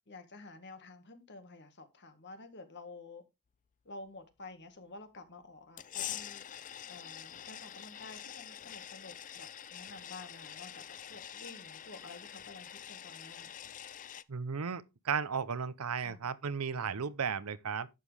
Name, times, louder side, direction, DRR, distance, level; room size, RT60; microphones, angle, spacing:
voice 1, 0.1-3.2 3.9-6.5 6.9-10.8 11.1-13.5 16.0-16.3, left 3 dB, 55° left, 1.8 m, -51 dB
sound 1, 5.8-14.2, left 10 dB, 35° left, 0.4 m, -45 dB
voice 2, 14.3-17.9, right 6 dB, 85° right, 0.7 m, -35 dB
11.0 x 7.5 x 3.3 m
head